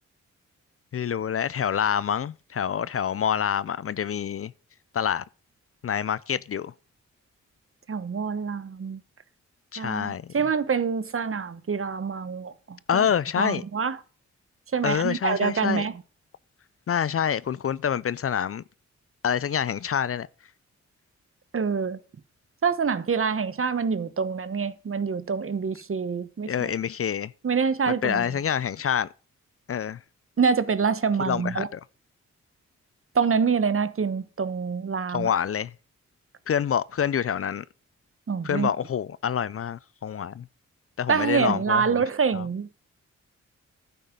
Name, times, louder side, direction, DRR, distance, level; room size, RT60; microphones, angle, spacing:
voice 1, 0.9-4.5 4.9-5.2 5.8-6.7 9.7-10.3 12.9-13.6 14.8-15.9 16.9-18.6 19.2-20.3 26.5-27.3 27.9-29.1 29.7-30.0 31.2-31.8 35.1-35.7 36.5-37.6 38.4-40.5 41.0-42.0 42.3-42.4, left 8 dB, 50° left, 0.5 m, -27 dB
voice 2, 7.9-9.0 9.8-13.1 13.4-14.0 14.7-15.9 21.5-22.0 22.6-26.7 27.4-28.3 30.4-31.7 33.1-35.3 38.3-38.7 41.1-42.7, right 6 dB, 45° right, 1.1 m, -26 dB
11.5 x 9.3 x 3.8 m
cardioid pair, 60°, 30 cm